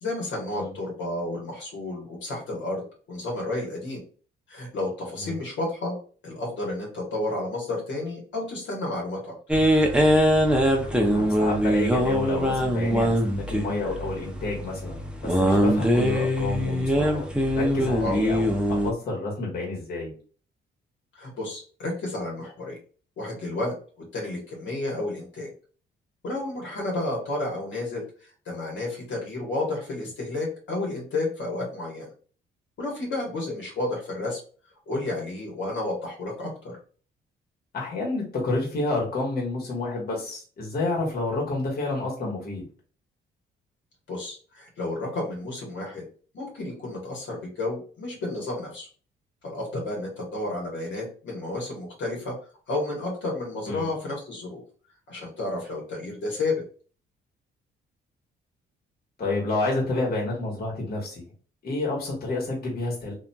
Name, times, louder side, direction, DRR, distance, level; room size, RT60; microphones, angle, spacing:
voice 1, 0.0-2.8 3.1-4.0 4.5-5.9 6.2-9.3 18.0-18.2 21.1-22.8 23.2-23.7 24.1-25.5 26.2-32.1 32.8-34.4 34.9-36.7 44.1-46.0 46.3-48.9 49.4-52.3 52.7-54.6 55.1-56.6, left 2 dB, 70° left, -2 dB, 1.2 m, -31 dB
sound 1, 9.5-18.9, equal, 5° right, 0.5 m, -22 dB
voice 2, 11.1-13.2 13.5-17.3 17.6-20.1 37.7-42.6 53.7-53.9 59.2-61.2 61.6-63.1, left 2 dB, 50° left, -2 dB, 1.2 m, -29 dB
2.7 x 2.5 x 2.2 m, 0.40 s
cardioid pair, 90°, 20 cm